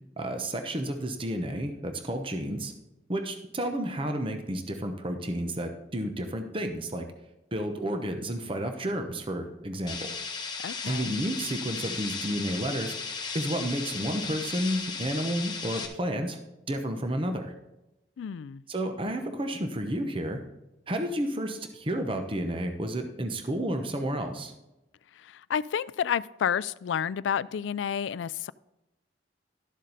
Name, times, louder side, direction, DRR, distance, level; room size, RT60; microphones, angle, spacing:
voice 1, 0.2-2.7 3.1-7.1 7.5-10.1 10.9-12.9 13.3-16.4 16.7-17.5 18.7-20.4 20.9-24.5, right 1 dB, 30° right, 0.9 m, -31 dB
sound 1, 9.9-15.9, left 5 dB, 25° left, 1.3 m, -36 dB
voice 2, 10.6-11.2 18.2-18.6 25.3-28.5, left 8 dB, 90° left, 0.3 m, -30 dB
12.0 x 7.4 x 4.1 m
head